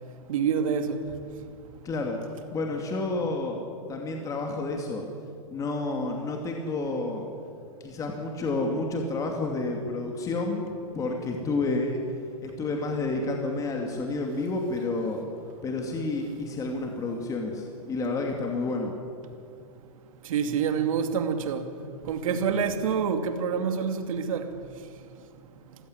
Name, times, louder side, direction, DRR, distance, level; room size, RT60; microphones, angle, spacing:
voice 1, 0.3-1.0 20.3-21.7 22.0-24.5, right 6 dB, 65° right, 2.6 m, -27 dB
voice 2, 1.8-2.2 2.5-3.6 3.9-5.0 5.5-7.2 7.8-10.7 10.9-12.0 12.4-15.2 15.6-18.9, left 3 dB, 20° left, 2.6 m, -30 dB
26.5 x 15.5 x 9.8 m
hypercardioid pair, 145°, 19 cm